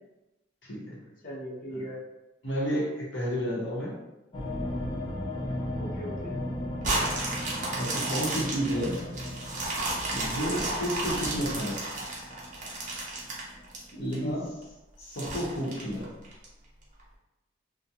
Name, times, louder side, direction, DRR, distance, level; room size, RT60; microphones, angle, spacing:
voice 1, 0.6-0.9 2.4-3.9 7.8-9.1 10.1-11.7 13.9-14.4 15.0-16.1, equal, 80° left, -6 dB, 0.8 m, -31 dB
voice 2, 1.2-2.0 2.8-2.9 5.7-6.3 14.2-14.4, equal, 45° left, -7 dB, 0.8 m, -39 dB
sound 1, 4.3-13.6 13.9-14.0 14.2-14.4, left 1 dB, 25° left, 0.4 m, -37 dB
sound 2, 6.8-14.1 14.6-14.7 15.2-16.4 17.0-17.1, right 2 dB, 40° right, 0.6 m, -32 dB
2.3 x 2.1 x 2.8 m, 0.97 s
head